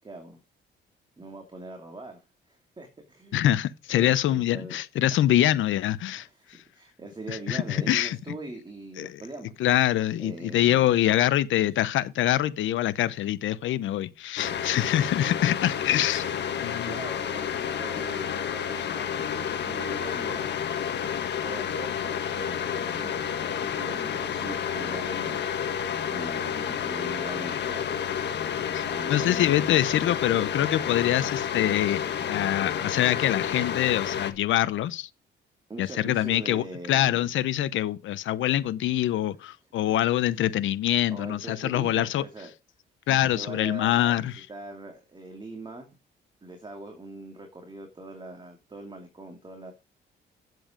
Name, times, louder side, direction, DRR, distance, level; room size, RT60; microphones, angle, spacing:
voice 1, 0.0-0.4 1.2-3.5 3.9-4.8 5.1-5.2 6.1-9.5 10.2-11.0 15.0-15.1 16.0-16.3 16.8-20.5 21.4-25.4 25.7-28.4 28.8-29.5 35.7-37.3 40.1-40.5 41.1-42.5 43.0-45.9 46.4-49.7, right 2 dB, 25° right, 2.6 m, -42 dB
voice 2, 3.3-6.3 7.3-8.2 9.0-9.2 9.6-16.3 16.6-17.0 28.7-35.1 35.8-42.2 43.1-44.4, left 12 dB, 75° left, 0.8 m, -25 dB
sound 1, 14.4-34.3, left 8 dB, 60° left, 1.5 m, -30 dB
9.2 x 7.9 x 5.1 m
cardioid pair, 90°, 20 cm